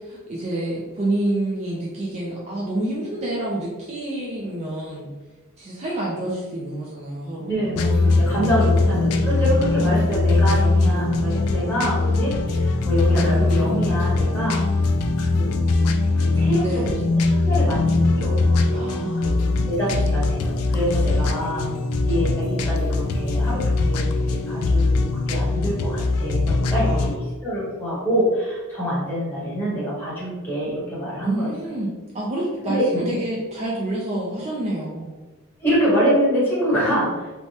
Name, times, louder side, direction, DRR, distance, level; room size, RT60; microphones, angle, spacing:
voice 1, 0.0-5.1 5.6-7.8 8.5-8.8 16.6-16.9 18.7-19.4 21.0-21.4 26.8-27.1 31.2-35.1, right 1 dB, 30° right, -4 dB, 0.4 m, -28 dB
voice 2, 7.4-14.7 15.2-15.5 16.1-18.9 19.2-21.7 22.0-27.1 27.4-31.5 32.7-32.9 35.6-37.3, equal, 10° left, -8 dB, 1.1 m, -25 dB
sound 1, 7.8-27.2, left 3 dB, 80° left, 0.3 m, -21 dB
3.2 x 2.2 x 2.7 m, 1.2 s
head